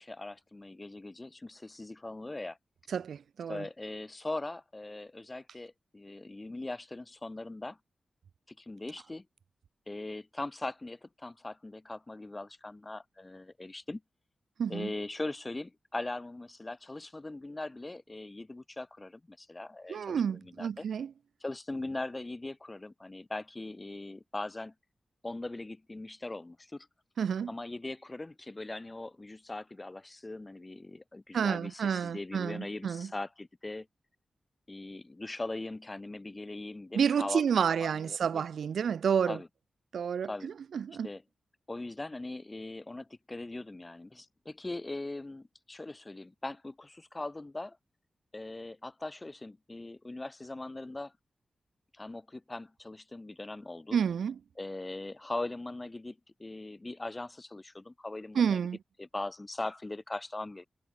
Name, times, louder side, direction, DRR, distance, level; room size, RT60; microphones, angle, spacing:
voice 1, 0.0-2.6 3.5-7.8 8.5-9.2 9.9-14.0 14.7-20.8 21.4-24.7 25.2-26.9 27.5-33.9 34.7-37.4 37.8-38.4 39.3-39.5 40.2-40.5 41.0-41.2 41.7-47.8 48.3-51.1 51.9-54.0 54.6-58.6 59.0-60.7, left 2 dB, 30° left, 4.8 m, -40 dB
voice 2, 2.9-3.6 14.6-14.9 19.9-21.1 27.2-27.5 31.3-33.1 36.9-39.4 39.9-41.1 53.9-54.4 58.3-58.8, right 7 dB, 85° right, 1.4 m, -30 dB
cardioid pair, 45°, 0 cm